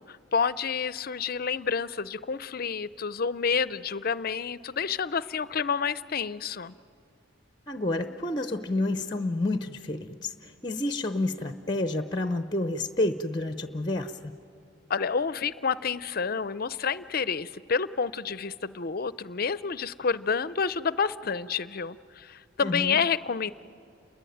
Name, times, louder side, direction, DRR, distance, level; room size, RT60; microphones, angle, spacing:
voice 1, 0.0-6.7 14.9-23.5, left 6 dB, 50° left, 16 dB, 0.6 m, -29 dB
voice 2, 7.7-14.3 22.6-23.0, left 2 dB, 20° left, 9 dB, 0.8 m, -29 dB
29.5 x 22.0 x 9.3 m, 2.6 s
head